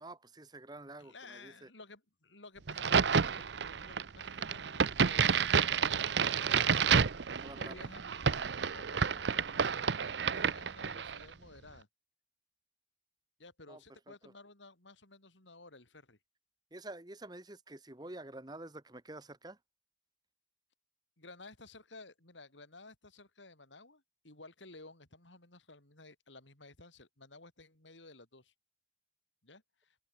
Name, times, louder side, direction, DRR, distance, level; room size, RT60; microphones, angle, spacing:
voice 1, 0.0-1.7 7.4-7.8 13.7-14.3 16.7-19.6, right 2 dB, 20° right, 1.4 m, -48 dB
voice 2, 1.0-7.0 7.5-11.9 13.4-16.2 21.2-28.5 29.4-30.0, left 3 dB, 85° left, 5.7 m, -55 dB
Crack, 2.7-11.2, right 6 dB, 70° right, 0.7 m, -30 dB
open air
head